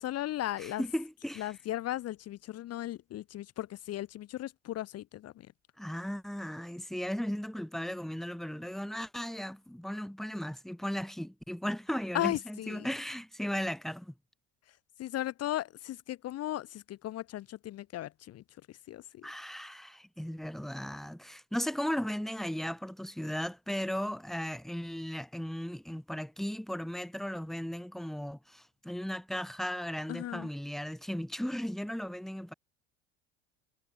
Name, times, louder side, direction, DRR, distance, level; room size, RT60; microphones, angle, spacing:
voice 1, 0.0-0.8 1.4-5.3 12.1-12.9 15.0-18.4 18.9-19.2 30.1-30.5, left 14 dB, 50° left, 1.1 m, -36 dB
voice 2, 0.6-1.5 5.8-14.1 19.2-32.5, equal, ahead, 1.9 m, -36 dB
hypercardioid pair, 75°, 32 cm